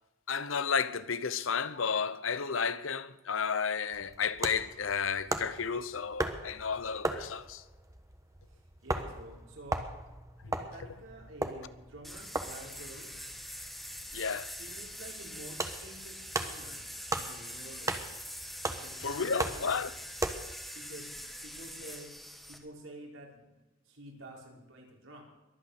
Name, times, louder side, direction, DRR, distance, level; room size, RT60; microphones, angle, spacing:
voice 1, 0.3-7.6 14.1-14.5 19.0-19.9, left 6 dB, 85° left, 0.8 m, -32 dB
sound 1, 3.9-20.3, right 2 dB, 15° right, 1.2 m, -39 dB
voice 2, 8.8-9.8 10.5-13.1 14.5-17.9 18.7-19.8 20.7-22.1 22.5-23.5 23.9-25.2, right 1 dB, 80° right, 5.2 m, -50 dB
sound 2, 12.0-22.6, equal, ahead, 1.7 m, -44 dB
22.5 x 8.8 x 6.6 m
head